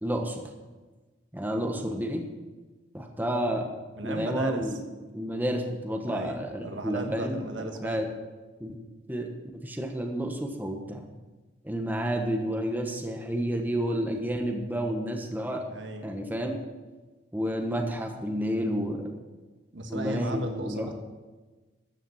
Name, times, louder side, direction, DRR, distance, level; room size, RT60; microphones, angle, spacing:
voice 1, 0.0-0.4 1.3-2.3 2.9-3.7 4.0-4.9 5.1-8.1 8.6-8.8 9.1-11.0 11.6-15.6 16.0-16.6 17.3-19.1 19.9-20.9, equal, 10° right, 2 dB, 1.3 m, -30 dB
voice 2, 1.6-2.0 4.0-4.7 6.0-8.1 15.7-16.1 19.7-20.9, right 1 dB, 70° right, 5 dB, 1.5 m, -36 dB
13.5 x 7.0 x 7.3 m, 1.2 s
head